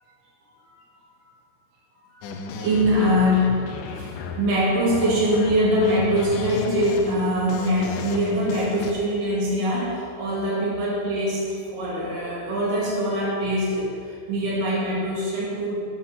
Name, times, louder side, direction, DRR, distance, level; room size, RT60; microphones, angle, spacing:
sound 1, 2.2-8.9, left 4 dB, 80° left, 2.5 m, -33 dB
voice 1, 2.5-15.8, equal, 85° right, -5 dB, 4.1 m, -23 dB
18.5 x 7.7 x 5.9 m, 2.5 s
omnidirectional pair, 3.7 m